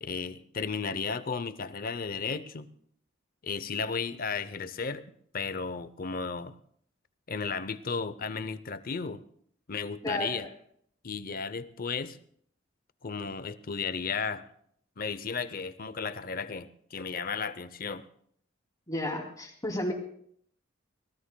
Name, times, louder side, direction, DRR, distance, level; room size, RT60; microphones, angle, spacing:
voice 1, 0.0-2.7 3.4-5.1 5.3-6.5 7.3-9.2 9.7-10.5 11.0-12.2 13.0-14.4 15.0-18.1, left 5 dB, 45° left, 14 dB, 0.7 m, -34 dB
voice 2, 10.0-10.4 18.9-19.9, left 1 dB, 20° left, 1 dB, 2.7 m, -32 dB
24.5 x 18.0 x 2.3 m, 0.65 s
head